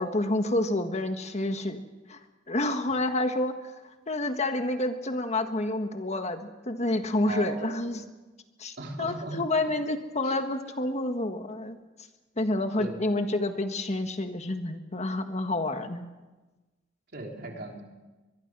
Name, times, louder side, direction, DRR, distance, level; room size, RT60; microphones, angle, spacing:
voice 1, 0.0-1.8 2.1-2.2 2.5-3.5 4.1-8.0 8.6-11.8 12.4-16.1, left 2 dB, 35° left, 7 dB, 1.5 m, -29 dB
voice 2, 7.3-7.9 8.8-9.4 9.6-9.7 10.2-10.4 12.8-12.9 17.1-17.8, right 2 dB, 55° right, 1 dB, 3.6 m, -38 dB
24.0 x 22.0 x 6.1 m, 1.2 s
head